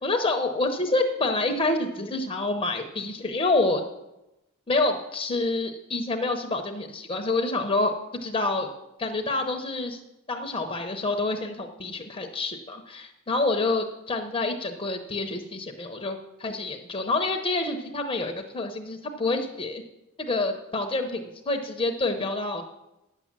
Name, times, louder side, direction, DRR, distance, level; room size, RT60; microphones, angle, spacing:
voice 1, 0.0-3.8 4.7-8.7 9.0-10.0 10.3-19.8 20.2-22.6, left 2 dB, 25° left, 4 dB, 0.7 m, -27 dB
9.6 x 7.3 x 7.3 m, 0.92 s
head